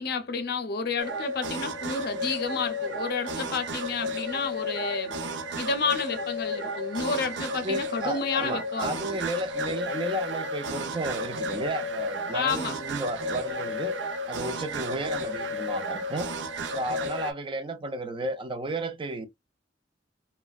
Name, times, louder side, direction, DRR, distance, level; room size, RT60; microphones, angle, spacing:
voice 1, 0.0-5.2 5.6-9.2 12.3-12.8, left 5 dB, 60° left, 0.6 m, -30 dB
sound 1, 1.0-17.3, left 1 dB, 85° right, 0.5 m, -33 dB
voice 2, 7.6-14.0 14.3-16.3 16.7-19.3, right 1 dB, 30° right, 0.4 m, -33 dB
3.2 x 2.2 x 2.3 m
head